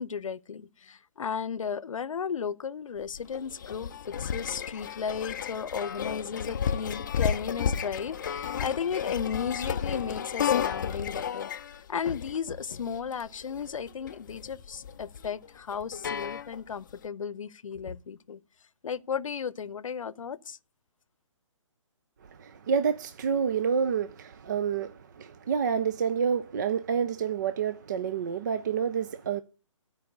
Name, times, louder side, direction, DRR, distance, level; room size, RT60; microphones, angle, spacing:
voice 1, 0.0-3.9 4.2-11.5 11.9-18.4 18.8-20.6, left 7 dB, 75° left, 0.7 m, -34 dB
sound 1, 3.0-16.9, left 8 dB, 35° left, 0.4 m, -33 dB
voice 2, 22.4-29.4, right 7 dB, 35° right, 0.4 m, -28 dB
12.5 x 4.7 x 6.7 m
hypercardioid pair, 165°, 17 cm